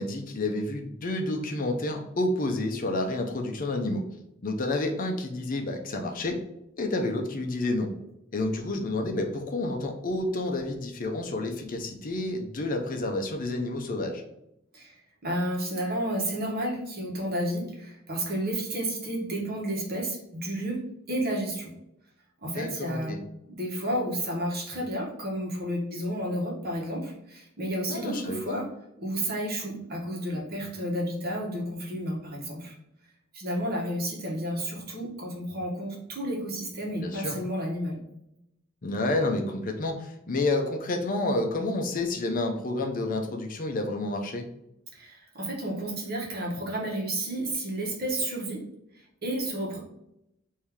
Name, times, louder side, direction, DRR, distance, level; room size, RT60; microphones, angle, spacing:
voice 1, 0.0-4.0 4.4-6.4 6.8-7.9 8.3-14.2 22.4-23.2 27.9-28.6 36.9-37.4 38.8-44.5, left 2 dB, 45° left, 3 dB, 0.6 m, -29 dB
voice 2, 14.7-21.7 22.4-23.2 23.5-28.7 29.0-32.7 33.3-38.0 44.9-48.7 48.9-49.8, right 1 dB, 50° right, -2 dB, 1.2 m, -31 dB
3.6 x 2.7 x 4.5 m, 0.84 s
head